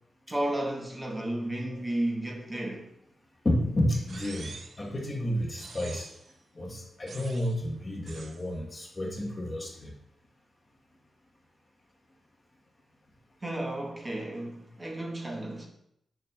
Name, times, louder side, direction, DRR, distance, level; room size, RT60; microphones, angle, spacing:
voice 1, 0.3-2.9 13.4-15.7, right 1 dB, 20° right, 1.1 m, -33 dB
voice 2, 3.4-6.1 6.5-9.9, left 1 dB, 25° left, 1.1 m, -31 dB
sound 1, 4.1-4.9 5.6-6.3 7.1-7.6 8.1-8.4, right 4 dB, 50° right, 0.5 m, -46 dB
7.9 x 6.7 x 2.3 m
wide cardioid pair, 160°, 0 cm